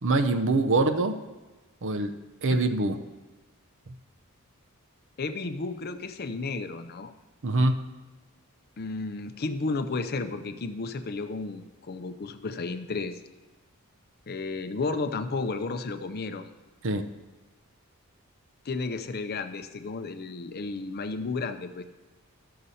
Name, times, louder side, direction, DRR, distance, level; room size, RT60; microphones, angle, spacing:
voice 1, 0.0-1.1 1.8-2.1 2.4-3.0 7.4-7.7 16.8-17.0, right 2 dB, 60° right, 8 dB, 0.6 m, -24 dB
voice 2, 5.2-7.1 8.8-13.2 14.3-16.5 18.6-21.8, left 3 dB, 45° left, 9 dB, 0.6 m, -33 dB
12.5 x 6.6 x 4.2 m, 1.2 s
head